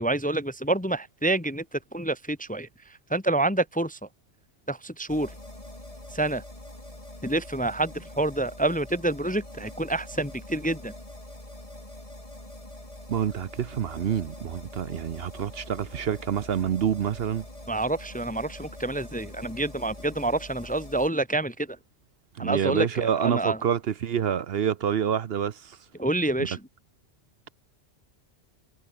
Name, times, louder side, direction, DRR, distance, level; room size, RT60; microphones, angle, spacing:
voice 1, 0.0-2.7 3.1-4.0 4.7-5.3 6.1-6.4 7.2-10.9 17.7-21.8 22.4-23.6 26.0-26.6, right 2 dB, 10° left, 0.7 m, -27 dB
sound 1, 5.1-21.1, left 1 dB, 30° left, 4.9 m, -44 dB
voice 2, 13.1-17.4 22.4-25.8 26.4-26.5, right 8 dB, 60° right, 0.9 m, -27 dB
omnidirectional pair, 1.2 m